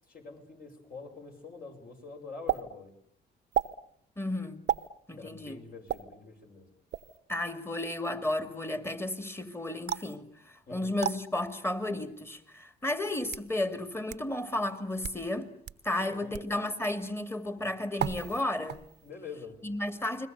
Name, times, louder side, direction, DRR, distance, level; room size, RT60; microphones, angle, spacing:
voice 1, 0.1-2.9 5.1-6.7 10.7-10.9 15.9-16.5 19.0-19.6, left 4 dB, 50° left, 6.6 m, -46 dB
sound 1, 2.5-2.6 3.5-3.7 4.7-4.9 5.9-6.0 6.9-7.2 9.9-10.2 11.0-11.2 12.1-12.2 13.0-13.5 14.1-14.2 14.9-15.2 15.7-15.8 16.3-16.5 18.0-18.4 18.7-19.1, right 10 dB, 60° right, 1.0 m, -32 dB
voice 2, 4.2-4.6 5.1-5.6 7.3-10.3 10.7-15.5 15.8-18.8 19.6-20.3, left 1 dB, 10° left, 2.4 m, -33 dB
30.0 x 21.5 x 6.9 m
cardioid pair, 90°, 20 cm